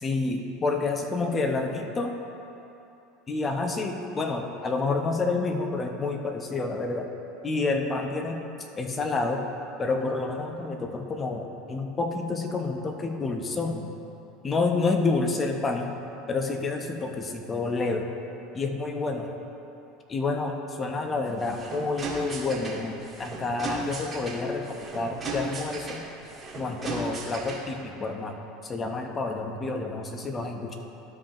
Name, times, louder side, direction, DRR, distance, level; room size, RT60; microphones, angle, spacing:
voice 1, 0.0-2.1 3.3-7.1 7.4-8.4 8.8-9.5 9.8-13.9 14.4-16.0 16.3-18.1 18.5-19.3 20.1-26.1 26.5-30.8, left 3 dB, 30° left, 4 dB, 0.8 m, -29 dB
sound 1, 21.2-27.8, right 2 dB, 25° right, 1.6 m, -36 dB
12.5 x 5.2 x 2.9 m, 3.0 s
hypercardioid pair, 85°, 0 cm